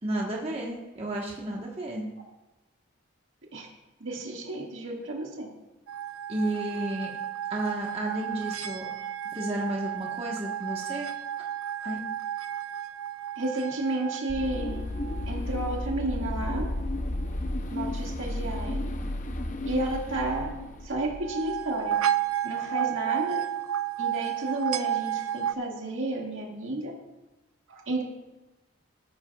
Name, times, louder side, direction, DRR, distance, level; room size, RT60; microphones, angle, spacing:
voice 1, 0.0-2.0 6.3-7.1 7.5-8.9 9.3-11.1 11.8-12.0, right 1 dB, 30° right, -2 dB, 1.3 m, -32 dB
voice 2, 4.0-5.5 13.4-14.8 15.3-16.6 17.7-18.8 19.7-20.5 20.8-22.0 22.4-23.4 24.0-26.9 27.7-28.0, right 2 dB, 65° right, -1 dB, 1.9 m, -32 dB
sound 1, 5.9-15.7 21.1-25.5, right 10 dB, 85° right, 0.4 m, -32 dB
sound 2, 14.3-21.7, left 1 dB, 40° left, 0.6 m, -33 dB
14.0 x 11.5 x 2.4 m, 1.1 s
head